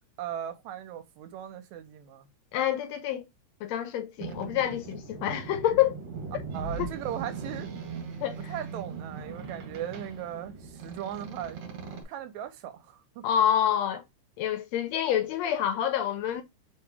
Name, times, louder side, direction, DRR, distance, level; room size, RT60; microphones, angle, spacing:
voice 1, 0.2-2.3 6.5-7.7 8.5-11.7 12.1-13.3, right 10 dB, 80° right, 2.0 m, -38 dB
voice 2, 2.5-3.2 3.6-6.0 6.8-6.9 8.2-8.5 13.2-14.0 14.4-16.4, left 10 dB, 75° left, 1.7 m, -27 dB
Boat Water vehicle, 4.2-12.0, right 5 dB, 65° right, 2.1 m, -39 dB
4.5 x 2.9 x 3.3 m
omnidirectional pair, 3.3 m